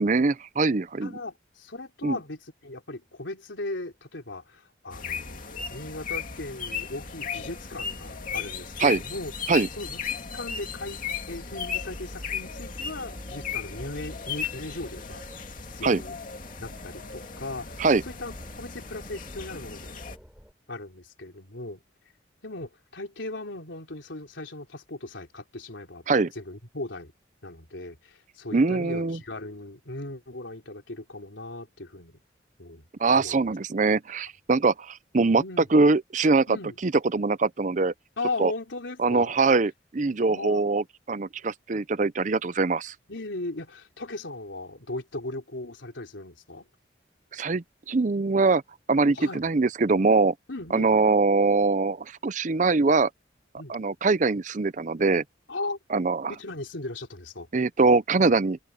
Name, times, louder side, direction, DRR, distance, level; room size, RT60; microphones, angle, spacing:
voice 1, 0.0-1.2 2.0-2.2 8.8-9.0 9.5-9.7 15.8-16.0 17.8-18.0 26.1-26.3 28.5-29.2 33.0-35.4 35.7-36.6 36.8-37.9 38.4-38.5 39.0-42.9 47.3-48.6 48.9-50.3 50.7-53.1 53.7-55.2 55.9-56.3 57.5-58.6, right 3 dB, 40° right, 0.6 m, -23 dB
voice 2, 1.0-9.3 9.8-10.0 10.3-15.2 15.7-16.1 16.6-20.0 20.7-21.8 22.4-26.0 26.4-27.1 27.4-32.2 32.6-32.9 33.1-33.5 35.4-35.7 36.5-36.8 38.2-39.3 40.3-40.8 43.1-46.7 49.1-49.5 50.5-50.9 53.6-53.8 55.5-55.8 56.3-57.5, left 2 dB, 90° left, 3.7 m, -37 dB
sound 1, 4.9-20.2, left 6 dB, 45° left, 2.5 m, -36 dB
sound 2, 7.6-20.5, equal, 5° right, 5.6 m, -52 dB
head